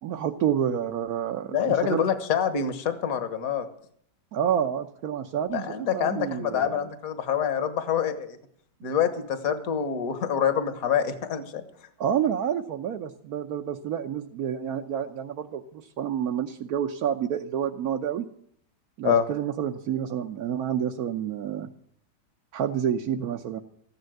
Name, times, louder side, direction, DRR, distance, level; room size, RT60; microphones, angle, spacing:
voice 1, 0.0-2.0 4.3-6.8 12.0-18.3 19.0-21.7 22.5-23.6, right 9 dB, 65° right, 4 dB, 1.3 m, -29 dB
voice 2, 1.5-3.7 5.5-8.4 8.8-11.6 19.0-19.2, left 8 dB, 55° left, 10 dB, 1.7 m, -26 dB
14.5 x 11.5 x 7.8 m, 0.64 s
omnidirectional pair, 1.8 m